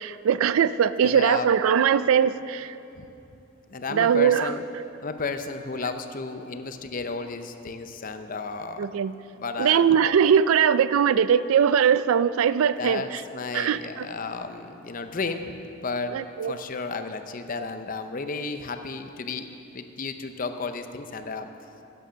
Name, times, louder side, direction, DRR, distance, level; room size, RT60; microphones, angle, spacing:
voice 1, 0.0-2.7 3.9-4.5 8.8-9.1 9.6-13.2 13.5-14.1 16.1-16.5, right 8 dB, 85° right, 15 dB, 0.4 m, -21 dB
voice 2, 1.0-1.5 2.9-3.1 3.7-4.6 5.0-9.0 9.3-9.9 12.8-19.5 19.7-21.5, left 4 dB, 40° left, 8 dB, 0.6 m, -33 dB
11.0 x 9.2 x 6.3 m, 2.8 s
head